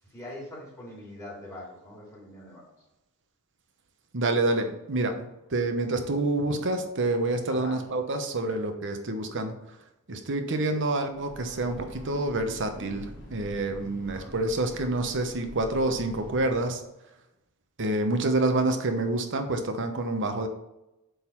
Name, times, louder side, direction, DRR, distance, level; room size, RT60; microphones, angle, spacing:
voice 1, 0.1-2.7 7.5-7.8 10.7-10.8, left 1 dB, 15° left, -5 dB, 2.6 m, -42 dB
voice 2, 4.1-9.6 10.1-16.8 17.8-20.5, right 2 dB, 55° right, 6 dB, 1.0 m, -27 dB
Breathing / Train, 11.1-16.8, equal, 55° left, 2.6 m, -45 dB
8.0 x 4.0 x 4.6 m, 0.91 s
head